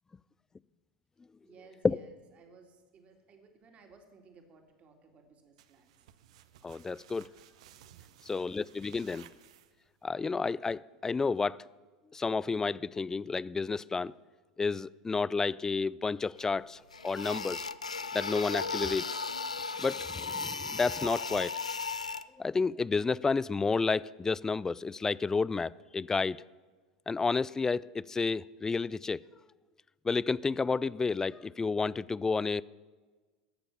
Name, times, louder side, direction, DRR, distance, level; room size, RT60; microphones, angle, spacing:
voice 1, 1.4-5.9, right 4 dB, 40° right, 2.3 m, -58 dB
sound 1, 5.6-10.1, right 11 dB, 65° right, 0.7 m, -57 dB
voice 2, 6.6-7.3 8.3-9.3 10.0-11.6 12.1-14.1 14.6-17.7 18.1-19.2 19.8-21.5 22.4-26.4 27.1-29.2 30.0-32.6, left 4 dB, 15° left, 0.3 m, -31 dB
sound 2, 16.4-16.5 16.9-22.2, left 4 dB, 90° left, 0.4 m, -36 dB
14.0 x 7.1 x 8.2 m
figure-of-eight pair, 80°, 3 cm